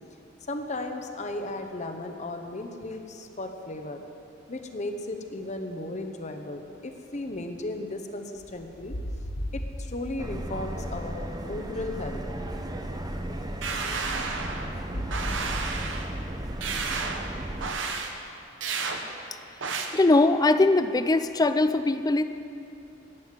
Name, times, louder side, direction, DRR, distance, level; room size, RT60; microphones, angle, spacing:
voice 1, 0.5-4.0 4.5-8.9 9.5-12.2, left 2 dB, 40° left, 5 dB, 0.9 m, -35 dB
sound 1, 8.4-16.9, equal, 65° left, 1.3 m, -38 dB
Subway metro underground, 10.2-17.7, right 1 dB, 20° right, 0.7 m, -35 dB
sound 2, 13.6-14.7 15.1-16.1 16.6-17.3 17.6-18.1 18.6-19.0 19.6-19.9, right 4 dB, 70° right, 1.0 m, -31 dB
voice 2, 19.9-22.2, left 2 dB, 20° left, 11 dB, 0.4 m, -21 dB
10.5 x 7.7 x 9.1 m, 2.7 s
head